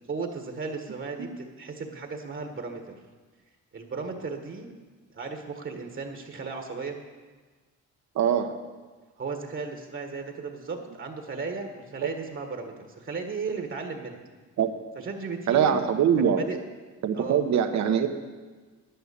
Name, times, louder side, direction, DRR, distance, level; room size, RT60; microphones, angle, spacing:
voice 1, 0.1-3.0 3.7-4.7 5.1-7.0 9.2-14.2 14.9-15.9 16.2-16.6 17.1-17.4, right 4 dB, 40° right, 4 dB, 1.5 m, -35 dB
voice 2, 8.1-8.5 12.0-12.1 14.6-14.7 15.5-16.4 17.0-18.1, right 8 dB, 65° right, 7 dB, 1.1 m, -23 dB
10.5 x 9.2 x 6.9 m, 1.4 s
cardioid pair, 90°, 30 cm